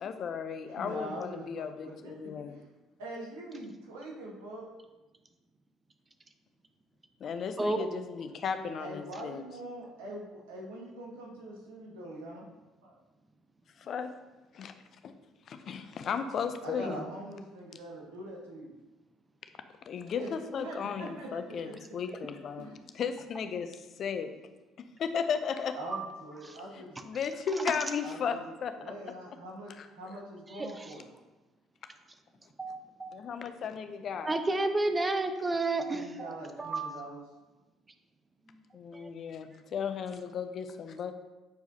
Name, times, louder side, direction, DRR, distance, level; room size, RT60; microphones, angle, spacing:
voice 1, 0.0-2.5 7.2-9.4 13.8-14.1 14.5-14.7 15.0-15.1 15.5-17.0 19.9-22.7 22.9-24.3 25.0-25.8 26.7-28.9 29.8-29.9 33.2-34.3 38.7-41.1, left 6 dB, 50° left, 9 dB, 0.5 m, -35 dB
voice 2, 0.8-2.1 2.5-2.6 3.0-4.7 8.8-12.5 12.8-13.0 16.6-18.7 20.1-20.3 20.6-21.7 22.6-22.7 25.7-27.0 28.0-28.4 28.8-31.1 35.9-37.2, right 1 dB, 75° right, -2 dB, 1.3 m, -43 dB
voice 3, 30.5-30.9 32.6-33.1 34.2-37.1 38.5-38.6 38.9-39.1, right 2 dB, 20° right, 8 dB, 0.6 m, -32 dB
7.9 x 4.7 x 2.7 m, 1.1 s
hypercardioid pair, 50°, 0 cm